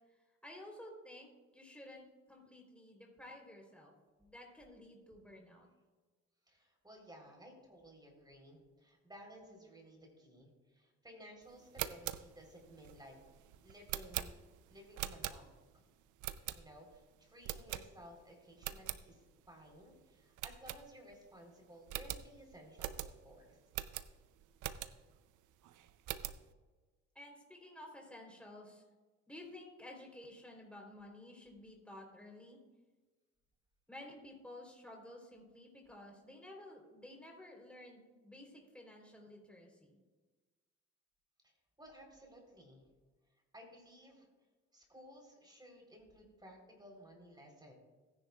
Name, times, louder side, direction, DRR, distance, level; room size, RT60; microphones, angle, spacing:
voice 1, 0.1-5.7 27.2-28.8 29.3-32.6 33.9-40.0, left 1 dB, 5° left, -1 dB, 3.5 m, -53 dB
voice 2, 6.5-13.2 13.6-14.3 14.7-15.8 16.5-23.6 41.4-42.9 43.5-44.3 44.7-47.7, equal, 15° right, 1 dB, 3.7 m, -57 dB
sound 1, 11.6-15.7 16.2-17.0 17.4-18.2 18.5-19.0 19.5-19.6 19.8-19.9 20.4-21.3 21.5-21.6 21.9-25.2 25.6-26.5, right 12 dB, 80° right, 0.6 m, -43 dB
18.5 x 10.0 x 2.4 m, 1.3 s
cardioid pair, 90°, 30 cm